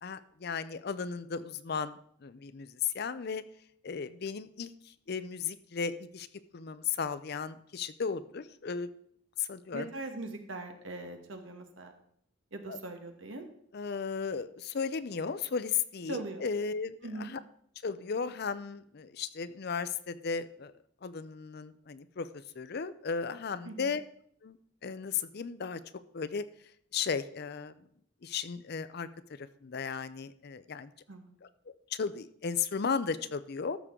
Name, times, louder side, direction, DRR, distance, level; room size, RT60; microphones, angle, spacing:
voice 1, 0.0-3.4 3.8-4.7 5.1-6.3 6.5-8.9 9.4-9.9 12.7-12.8 13.7-17.4 17.8-20.7 21.0-22.3 22.6-24.0 24.4-24.6 24.8-25.8 26.1-26.4 26.9-27.7 28.2-30.9 31.7-33.8, left 6 dB, 50° left, 14 dB, 0.5 m, -35 dB
voice 2, 9.7-11.9 12.5-13.5 16.1-16.4 17.0-17.3 23.6-23.9 31.1-31.3, right 2 dB, 70° right, 5 dB, 1.3 m, -41 dB
13.0 x 6.7 x 3.7 m, 0.65 s
head